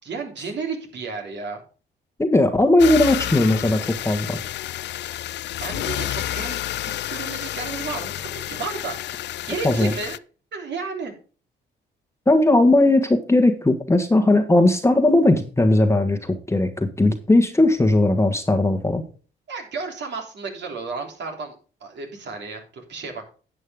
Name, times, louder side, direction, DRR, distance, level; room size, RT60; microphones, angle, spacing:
voice 1, 0.0-1.6 5.6-9.2 9.5-10.2 10.5-11.1 19.5-21.5 21.8-23.3, right 4 dB, 60° right, 2 dB, 3.3 m, -32 dB
voice 2, 2.2-4.4 9.6-9.9 12.3-19.0, left 2 dB, 15° left, 7 dB, 1.4 m, -18 dB
sound 1, 2.8-10.2, left 13 dB, 60° left, 0.4 m, -30 dB
11.0 x 8.6 x 3.6 m, 0.36 s
cardioid pair, 90°, 20 cm